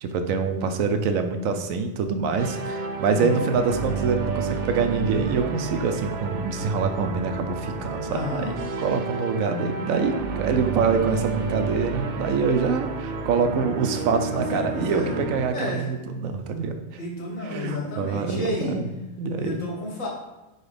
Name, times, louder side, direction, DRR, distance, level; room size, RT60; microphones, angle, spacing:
voice 1, 0.0-16.8 17.5-18.8 19.2-19.6, right 5 dB, 90° right, 7 dB, 1.0 m, -25 dB
sound 1, 2.4-15.5, right 4 dB, 70° right, 0.4 m, -31 dB
voice 2, 3.1-3.5 8.1-8.6 14.3-15.2 15.5-15.9 17.0-18.8 19.4-20.1, left 1 dB, 75° left, -3 dB, 2.1 m, -31 dB
4.8 x 4.1 x 5.0 m, 1.1 s
omnidirectional pair, 1.4 m